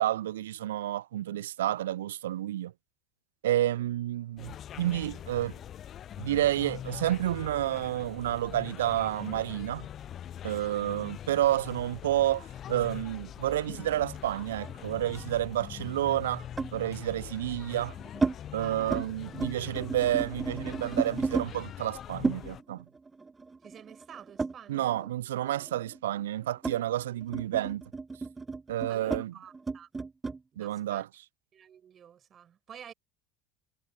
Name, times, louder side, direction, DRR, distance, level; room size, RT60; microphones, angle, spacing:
voice 1, 0.0-2.7 3.4-5.5 6.2-9.9 10.4-16.4 16.7-17.9 18.5-22.8 24.7-27.8 28.7-29.3 30.6-31.0, right 13 dB, 75° right, 0.3 m, -30 dB
sound 1, 4.4-22.6, left 10 dB, 45° left, 0.5 m, -43 dB
sound 2, 13.7-15.3 16.6-16.8 17.6-18.4 18.7-19.1 19.3-21.5 22.2-25.1 25.4-30.4, right 4 dB, 20° right, 0.9 m, -34 dB
voice 2, 18.6-19.0 23.6-25.0 28.9-29.9 30.5-31.1 31.5-32.9, right 8 dB, 40° right, 5.1 m, -50 dB
hypercardioid pair, 70°, 0 cm